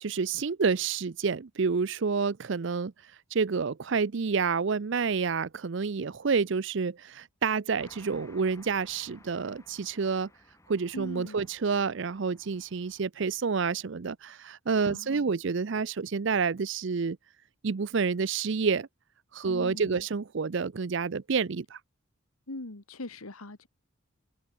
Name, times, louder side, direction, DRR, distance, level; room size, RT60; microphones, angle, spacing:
voice 1, 0.0-2.9 3.3-10.3 10.7-17.2 17.6-18.9 19.3-21.8, right 5 dB, 55° right, 0.5 m, -29 dB
sound 1, 7.7-13.0, left 2 dB, 15° left, 2.7 m, -57 dB
voice 2, 10.9-11.5 14.9-15.3 19.4-20.1 22.5-23.7, left 2 dB, 90° left, 2.0 m, -41 dB
head